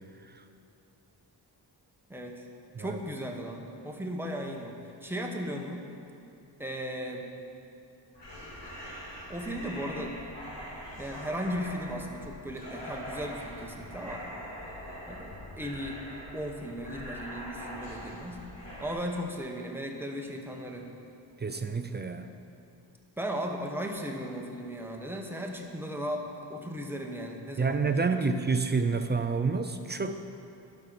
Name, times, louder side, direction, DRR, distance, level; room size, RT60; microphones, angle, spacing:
voice 1, 2.1-2.4 2.8-4.8 5.0-5.9 6.6-7.3 9.3-10.2 11.0-14.2 15.1-16.0 16.3-18.4 18.8-20.9 23.2-28.1, equal, 5° right, 1 dB, 0.9 m, -36 dB
sound 1, 8.1-18.9, equal, 70° left, 2.5 m, -42 dB
voice 2, 21.4-22.3 27.6-30.2, right 4 dB, 25° right, 8 dB, 0.3 m, -28 dB
11.0 x 5.3 x 6.0 m, 2.7 s
wide cardioid pair, 130°, 43 cm